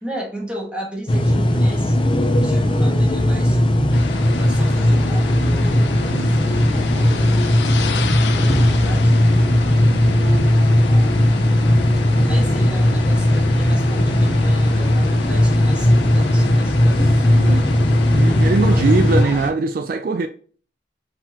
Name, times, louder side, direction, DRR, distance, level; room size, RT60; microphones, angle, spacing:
voice 1, 0.0-4.0 4.4-9.1 10.0-11.5 12.1-18.0 18.5-19.4, right 1 dB, 5° right, 1.4 m, -35 dB
sound 1, 1.1-19.2, left 1 dB, 30° left, 0.5 m, -17 dB
sound 2, 3.9-19.5, left 3 dB, 80° left, 0.6 m, -29 dB
voice 2, 6.1-6.6 9.8-10.1 17.3-17.7 18.1-20.3, right 3 dB, 55° right, 0.3 m, -22 dB
4.5 x 3.9 x 2.8 m
head